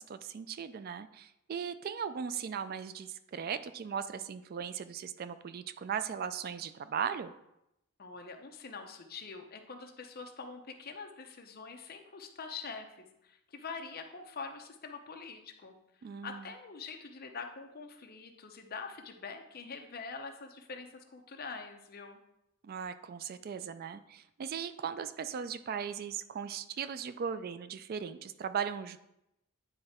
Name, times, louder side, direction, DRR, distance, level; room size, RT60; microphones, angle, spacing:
voice 1, 0.0-7.3 16.0-16.4 22.6-29.0, right 7 dB, 45° right, 12 dB, 0.3 m, -38 dB
voice 2, 8.0-15.7 16.2-22.2, left 4 dB, 45° left, 5 dB, 0.7 m, -45 dB
9.7 x 3.3 x 4.3 m, 0.85 s
head